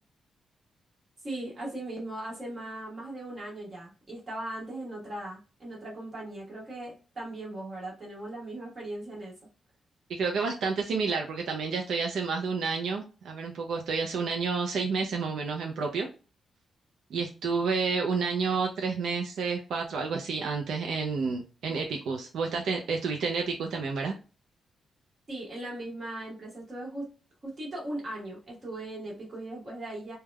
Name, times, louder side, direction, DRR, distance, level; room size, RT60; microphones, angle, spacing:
voice 1, 1.2-9.3 25.3-27.1 27.4-30.2, right 1 dB, 25° right, -4 dB, 1.3 m, -38 dB
voice 2, 10.1-16.1 17.1-24.1, right 4 dB, 75° right, 3 dB, 0.4 m, -30 dB
3.3 x 2.2 x 2.2 m, 0.33 s
wide cardioid pair, 165°, 0 cm